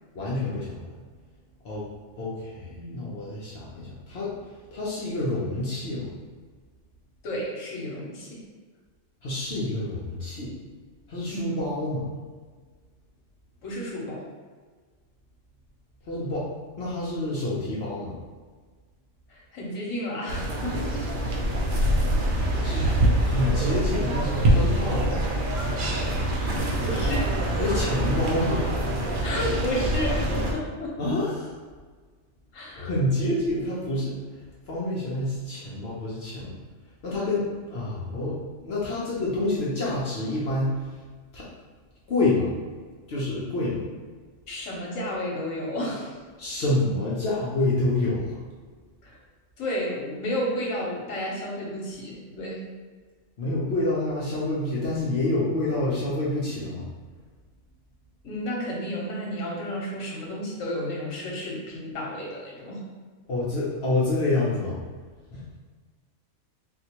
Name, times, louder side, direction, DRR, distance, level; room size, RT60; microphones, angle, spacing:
voice 1, 0.1-0.8 1.6-1.9 2.2-4.3 4.7-6.1 9.2-10.5 11.1-12.1 16.1-16.5 16.8-18.2 22.6-22.9 23.2-25.3 27.6-28.7 31.0-31.5 32.7-34.2 34.7-36.5 37.0-40.9 41.3-41.5 42.1-42.5 43.1-43.8 46.4-48.4 53.4-56.9 63.3-64.8 65.3-65.4, left 2 dB, 60° left, -6 dB, 0.9 m, -27 dB
voice 2, 2.8-3.1 7.2-8.4 11.3-11.6 13.6-14.3 19.3-20.9 26.4-27.3 27.7-28.0 29.2-31.0 32.5-32.9 44.5-46.2 49.0-49.2 49.6-52.7 58.2-62.8, equal, 75° left, -3 dB, 1.2 m, -32 dB
sound 1, 20.3-30.5, right 1 dB, 55° right, 0.6 m, -25 dB
4.3 x 2.1 x 2.8 m, 1.5 s
omnidirectional pair, 1.4 m